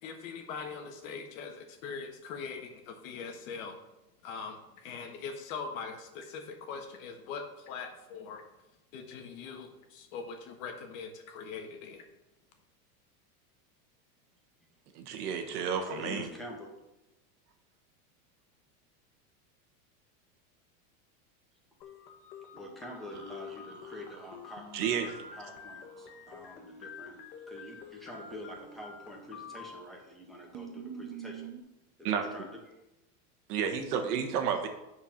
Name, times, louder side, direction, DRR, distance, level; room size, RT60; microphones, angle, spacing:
voice 1, 0.0-3.8 4.2-8.4 8.9-12.0, left 5 dB, 55° left, 4 dB, 1.6 m, -42 dB
voice 2, 14.9-16.3 24.7-25.1 32.0-32.2 33.5-34.7, right 7 dB, 80° right, 6 dB, 1.4 m, -31 dB
voice 3, 15.9-16.7 22.5-24.6 25.0-27.2 27.5-31.5 32.0-32.5, left 1 dB, ahead, -3 dB, 1.6 m, -46 dB
sound 1, 21.8-29.8, left 6 dB, 85° left, 1.5 m, -48 dB
sound 2, 23.1-26.5 29.2-29.7 30.0-30.1 30.5-31.6, right 8 dB, 25° right, 0.5 m, -48 dB
8.5 x 4.7 x 5.8 m, 0.95 s
supercardioid pair, 150°, 46 cm